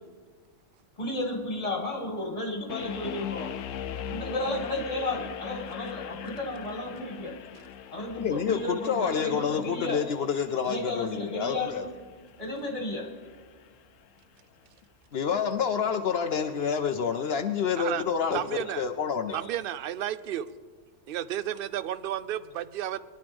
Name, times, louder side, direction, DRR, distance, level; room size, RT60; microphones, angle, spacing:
voice 1, 1.0-3.5 4.1-7.4 7.9-10.1 10.7-11.9 12.4-13.1, left 1 dB, 30° left, 1 dB, 2.1 m, -33 dB
sound 1, 2.7-13.7, left 9 dB, 90° left, 1.0 m, -41 dB
voice 2, 8.1-11.9 15.1-19.5, left 7 dB, 65° left, 9 dB, 0.8 m, -28 dB
voice 3, 18.3-18.8 19.3-20.5 21.1-23.0, right 11 dB, 60° right, 14 dB, 0.6 m, -32 dB
22.0 x 11.5 x 3.5 m, 1.5 s
omnidirectional pair, 1.3 m